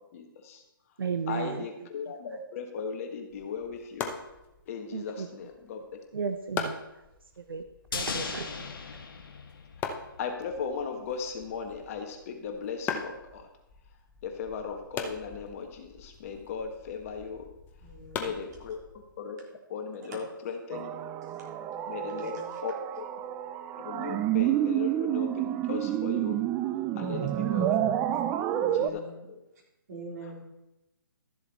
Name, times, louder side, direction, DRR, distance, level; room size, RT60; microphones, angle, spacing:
voice 1, 0.1-0.6 1.3-4.2 4.7-5.8 6.2-6.3 10.2-13.5 14.2-17.5 18.2-18.8 19.2-19.4 19.7-20.9 21.9-22.3 22.6-22.8 23.8-26.4 27.0-27.8 28.5-29.0 29.3-29.4, left 6 dB, 40° left, 4 dB, 1.6 m, -37 dB
voice 2, 1.0-1.7 4.9-5.3 6.1-7.0 7.4-7.6 7.9-8.7, right 5 dB, 75° right, 8 dB, 0.8 m, -34 dB
sound 1, 3.3-19.1, left 6 dB, 15° left, 0.9 m, -42 dB
sound 2, 7.9-10.3 10.6-10.7, left 5 dB, 70° left, 1.8 m, -37 dB
voice 3, 17.8-18.3 20.1-20.2 21.3-21.5 21.9-22.6 26.9-27.4 28.6-29.1 29.9-30.4, right 1 dB, 50° right, 0 dB, 3.7 m, -43 dB
sound 3, 20.7-28.9, right 12 dB, 15° right, 0.3 m, -29 dB
13.0 x 7.2 x 4.2 m, 0.92 s
hypercardioid pair, 145°, 12 cm